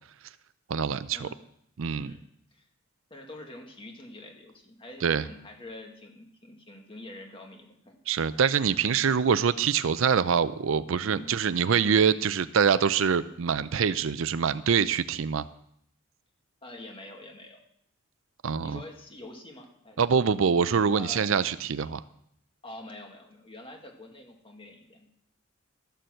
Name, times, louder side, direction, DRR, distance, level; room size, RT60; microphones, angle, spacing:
voice 1, 0.7-1.3 1.8-2.1 5.0-5.2 8.1-15.4 18.4-18.8 20.0-22.0, right 6 dB, 65° right, 14 dB, 0.5 m, -25 dB
voice 2, 1.9-2.7 3.1-8.0 11.1-11.3 16.6-17.6 18.6-20.0 20.9-21.3 22.6-25.1, left 2 dB, 25° left, 1 dB, 1.9 m, -46 dB
13.0 x 6.8 x 7.6 m, 0.72 s
head